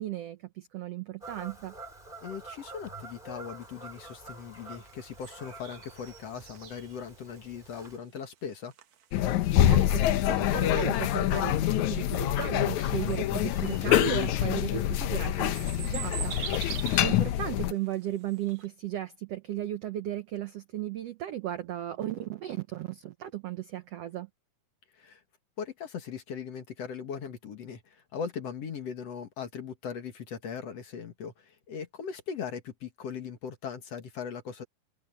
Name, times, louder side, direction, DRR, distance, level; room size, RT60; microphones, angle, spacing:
voice 1, 0.0-1.7 9.5-16.6 17.0-24.3, right 12 dB, 75° right, 1.5 m, -36 dB
Fowl / Bird vocalization bird call bird song, 1.2-8.0, right 2 dB, 15° right, 3.4 m, -47 dB
voice 2, 2.2-8.7 16.2-16.8 25.0-25.2 25.6-34.6, left 7 dB, 55° left, 2.5 m, -39 dB
sound 1, 3.6-18.7, right 9 dB, 60° right, 2.4 m, -45 dB
sound 2, 9.1-17.7, left 12 dB, 70° left, 2.0 m, -26 dB
omnidirectional pair, 3.9 m